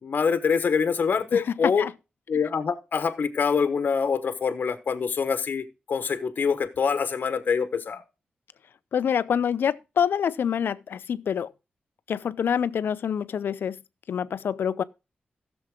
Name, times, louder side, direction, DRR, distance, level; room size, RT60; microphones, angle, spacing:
voice 1, 0.0-1.8 2.3-8.0, left 6 dB, 60° left, 1.1 m, -25 dB
voice 2, 1.3-1.9 8.9-11.5 12.1-13.8 14.1-14.8, left 8 dB, 80° left, 0.5 m, -26 dB
15.5 x 6.9 x 3.7 m
wide cardioid pair, 120°, 4 cm